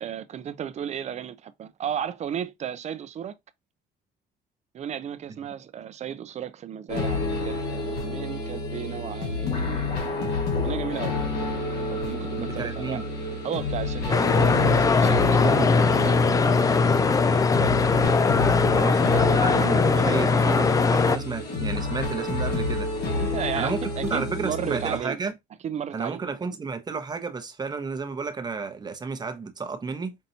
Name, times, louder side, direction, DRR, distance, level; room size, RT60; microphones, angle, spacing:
voice 1, 0.0-3.3 4.7-11.1 11.9-13.1 13.4-15.6 15.9-16.3 18.6-18.9 23.2-25.2 25.6-26.6, right 9 dB, 40° right, 0.5 m, -34 dB
sound 1, 6.9-25.0, left 2 dB, 70° left, 1.7 m, -29 dB
voice 2, 12.4-13.0 15.4-15.7 18.6-22.9 23.5-25.3 25.9-30.2, right 4 dB, 25° right, 0.9 m, -32 dB
sound 2, 14.1-21.2, left 4 dB, 20° left, 0.3 m, -20 dB
5.5 x 2.6 x 2.8 m
cardioid pair, 110°, 17 cm